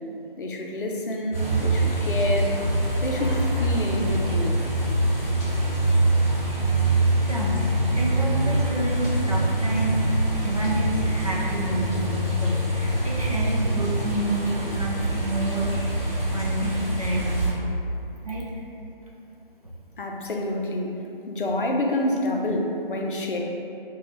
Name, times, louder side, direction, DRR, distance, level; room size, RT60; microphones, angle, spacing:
voice 1, 0.4-2.6 3.0-4.6 20.0-21.0 21.3-23.4, left 1 dB, 65° left, 1 dB, 0.5 m, -27 dB
sound 1, 1.3-17.5, right 1 dB, 15° left, 0.9 m, -24 dB
voice 2, 7.3-7.7 7.9-10.0 10.4-15.7 16.3-17.4 18.2-18.5, right 1 dB, 40° right, -4 dB, 0.4 m, -29 dB
2.9 x 2.3 x 4.1 m, 2.8 s
figure-of-eight pair, 170°, 29 cm